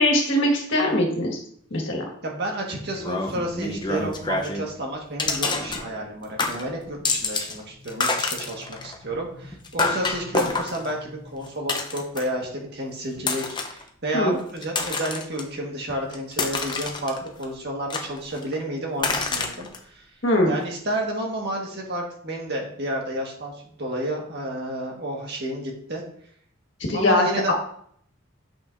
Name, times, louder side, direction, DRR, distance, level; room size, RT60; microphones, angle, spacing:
voice 1, 0.0-1.4 1.7-2.0 14.1-14.4 20.2-20.6 26.9-27.5, left 1 dB, 60° left, 0 dB, 1.8 m, -21 dB
voice 2, 2.2-19.7 20.5-23.5 23.8-26.0 26.9-27.5, right 1 dB, 50° right, 0 dB, 1.7 m, -30 dB
sound 1, 2.9-4.7 5.2-6.1 6.4-7.6 7.8-12.4 13.2-13.8 14.4-15.4 15.9-17.4 17.9-18.6 19.0-19.8, left 3 dB, 20° left, 0.7 m, -28 dB
8.8 x 5.9 x 2.7 m, 0.64 s
head